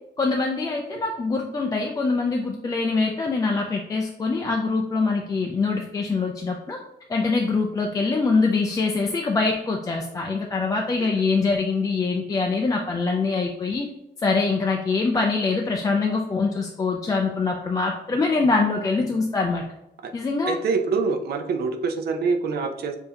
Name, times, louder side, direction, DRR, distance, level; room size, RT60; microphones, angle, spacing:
voice 1, 0.2-6.8 7.1-13.9 14.2-19.6 20.1-20.6, left 4 dB, 20° left, 0 dB, 0.3 m, -24 dB
voice 2, 20.5-23.0, right 4 dB, 60° right, 6 dB, 0.6 m, -25 dB
6.7 x 2.7 x 2.8 m, 0.86 s
wide cardioid pair, 175°, 18 cm